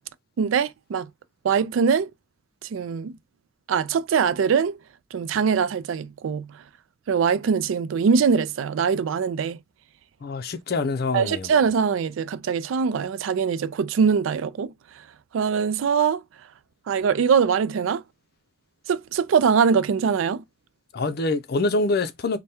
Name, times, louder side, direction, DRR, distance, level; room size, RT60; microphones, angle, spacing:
voice 1, 0.4-1.1 1.4-2.1 2.7-3.1 3.7-4.8 5.1-6.5 7.1-9.6 11.1-14.7 15.3-16.2 16.9-18.0 18.9-20.4, right 6 dB, 85° right, 0.3 m, -22 dB
voice 2, 10.2-11.5 20.9-22.4, left 3 dB, 55° left, 0.5 m, -25 dB
3.4 x 2.2 x 4.2 m
head